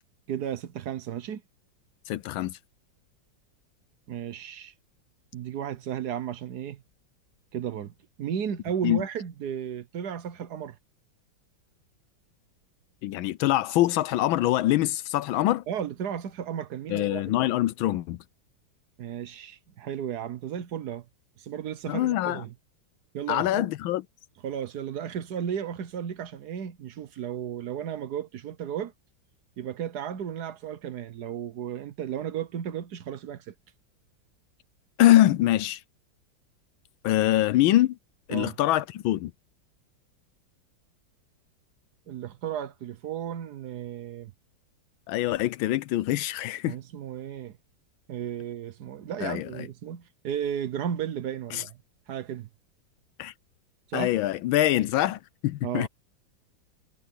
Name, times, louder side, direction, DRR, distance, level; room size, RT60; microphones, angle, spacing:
voice 1, 0.3-1.4 4.1-4.7 5.3-6.8 7.5-10.8 15.7-17.2 19.0-21.0 21.4-22.5 23.1-23.7 24.4-28.9 29.6-33.5 38.3-38.6 42.1-44.3 46.7-47.6 48.1-51.8 52.1-52.5 53.9-54.2 55.6-55.9, right 9 dB, 60° right, 1.3 m, -34 dB
voice 2, 2.1-2.6 8.8-9.0 13.0-15.6 16.9-18.2 21.9-22.4 23.3-24.0 35.0-35.8 37.0-38.0 38.3-39.3 45.1-46.8 49.2-49.7 51.5-51.6 53.2-53.3 53.9-55.9, left 14 dB, 85° left, 1.5 m, -24 dB
omnidirectional pair, 2.1 m